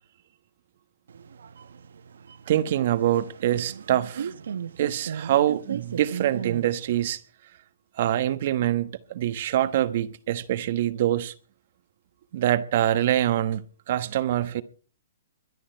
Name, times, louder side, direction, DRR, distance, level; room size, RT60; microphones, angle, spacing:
sound 1, 1.1-7.2, right 7 dB, 80° right, 0.9 m, -37 dB
voice 1, 2.5-4.3 4.8-7.2 8.0-11.3 12.3-14.6, right 12 dB, 50° right, 1.1 m, -25 dB
22.5 x 11.5 x 4.5 m
hypercardioid pair, 155°, 0 cm